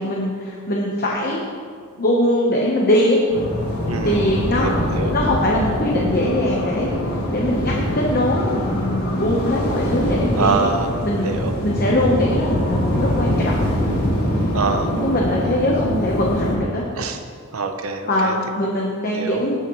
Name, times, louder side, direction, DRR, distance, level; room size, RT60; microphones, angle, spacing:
voice 1, 0.0-1.4 2.0-3.2 4.0-4.8 5.1-10.7 11.0-11.3 11.6-13.8 14.9-16.8 18.1-19.6, left 1 dB, 45° left, -3 dB, 1.1 m, -22 dB
sound 1, 3.3-16.6, equal, 80° left, 3.0 m, -23 dB
voice 2, 3.9-5.2 10.4-10.9 11.2-11.5 14.5-15.0 17.0-17.2 17.5-18.4 19.1-19.4, right 4 dB, 65° right, 6 dB, 0.8 m, -25 dB
18.0 x 6.2 x 3.2 m, 2.1 s
head